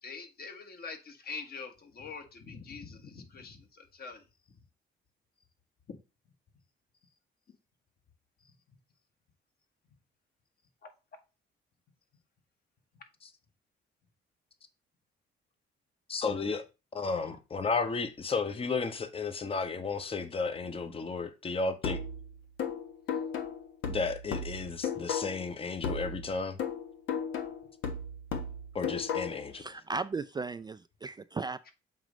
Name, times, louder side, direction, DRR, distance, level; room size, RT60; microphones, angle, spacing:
voice 1, 0.0-4.2 10.8-10.9 31.7-31.8, left 4 dB, 50° left, 1.5 m, -44 dB
voice 2, 16.1-16.6 16.9-22.0 23.9-26.6 28.7-29.6, left 4 dB, 30° left, 0.8 m, -33 dB
sound 1, 21.8-25.5 25.8-29.5, left 5 dB, 85° left, 1.2 m, -35 dB
voice 3, 29.5-31.7, right 4 dB, 20° right, 0.3 m, -36 dB
7.5 x 3.0 x 5.1 m
cardioid pair, 90°, 20 cm